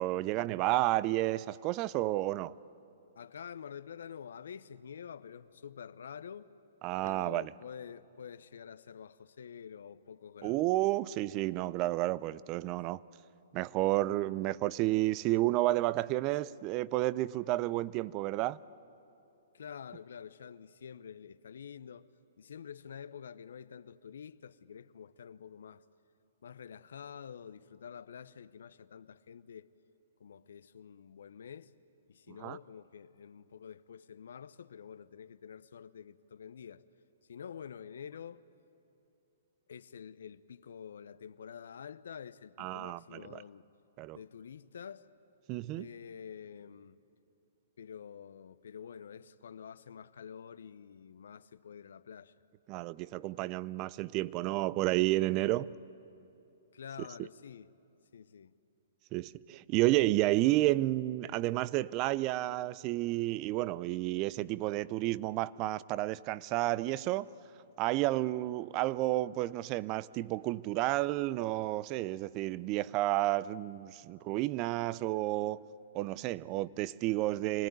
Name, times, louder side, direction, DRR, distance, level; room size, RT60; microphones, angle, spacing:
voice 1, 0.0-2.6 6.8-7.5 10.4-13.0 13.5-18.6 32.3-32.6 42.6-43.4 44.0-44.2 45.5-45.9 52.7-55.7 59.1-67.3 67.8-75.6 75.9-77.7, right 17 dB, 35° right, 0.5 m, -31 dB
voice 2, 3.2-6.5 7.0-10.7 12.7-13.0 19.5-22.1 22.4-25.8 26.4-29.7 30.2-31.7 32.1-36.8 37.3-38.4 39.7-43.7 44.1-45.1 45.7-47.0 47.8-52.3 56.7-57.7 58.1-58.5, left 7 dB, 75° left, 0.7 m, -48 dB
26.0 x 19.0 x 9.3 m
hypercardioid pair, 125°, 0 cm